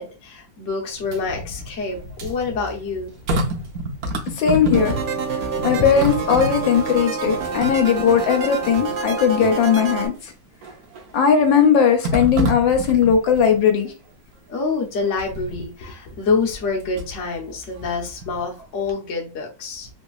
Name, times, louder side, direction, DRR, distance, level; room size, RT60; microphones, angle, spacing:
voice 1, 0.0-3.1 14.5-19.9, left 4 dB, 50° left, -1 dB, 1.0 m, -26 dB
sound 1, 0.9-5.3 5.5-8.3 8.9-9.0 10.6-11.1 12.0-13.5 15.2-15.6 16.5-17.2 17.6-18.6 18.9-19.0, right 1 dB, 60° right, 1.0 m, -29 dB
voice 2, 4.4-5.0 5.6-10.1 11.1-13.9, left 7 dB, 75° left, 4 dB, 1.3 m, -18 dB
sound 2, 4.7-10.1, right 4 dB, 85° right, 0.6 m, -27 dB
3.3 x 2.8 x 2.3 m, 0.32 s
omnidirectional pair, 2.1 m